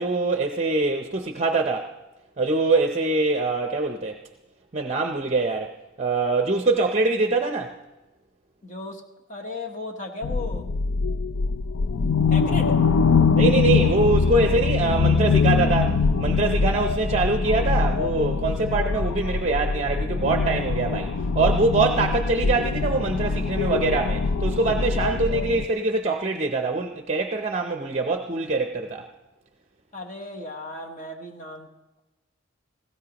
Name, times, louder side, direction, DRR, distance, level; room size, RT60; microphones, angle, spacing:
voice 1, 0.0-1.9 2.4-4.2 4.7-5.7 6.0-7.7 13.4-29.1, right 3 dB, 35° right, 5 dB, 0.6 m, -24 dB
voice 2, 8.6-9.0 9.3-10.7 12.3-12.8 29.9-31.7, left 2 dB, 35° left, 2 dB, 1.0 m, -35 dB
sound 1, 10.2-25.7, left 4 dB, 85° left, 0.5 m, -23 dB
18.5 x 15.5 x 2.9 m, 1.1 s
head